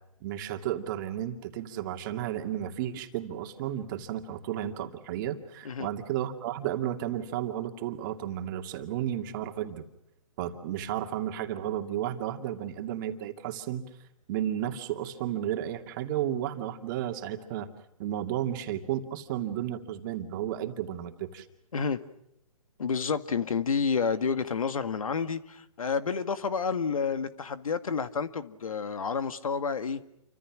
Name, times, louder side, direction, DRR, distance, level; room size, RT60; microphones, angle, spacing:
voice 1, 0.2-9.8 10.4-13.9 14.3-17.7 18.0-21.5, right 11 dB, 35° right, 5 dB, 2.5 m, -33 dB
voice 2, 22.8-30.0, left 5 dB, 75° left, 11 dB, 1.9 m, -29 dB
28.5 x 25.5 x 6.3 m, 0.79 s
hypercardioid pair, 140°, 18 cm